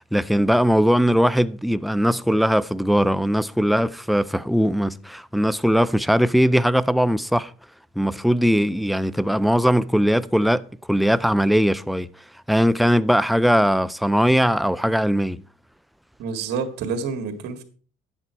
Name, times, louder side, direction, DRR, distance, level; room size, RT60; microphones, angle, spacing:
voice 1, 0.0-7.5 8.0-10.6 10.9-12.1 12.5-15.4, equal, ahead, 0.5 m, -20 dB
voice 2, 16.2-17.6, right 5 dB, 80° right, 2.0 m, -28 dB
10.5 x 8.8 x 4.5 m
cardioid pair, 110°, 17 cm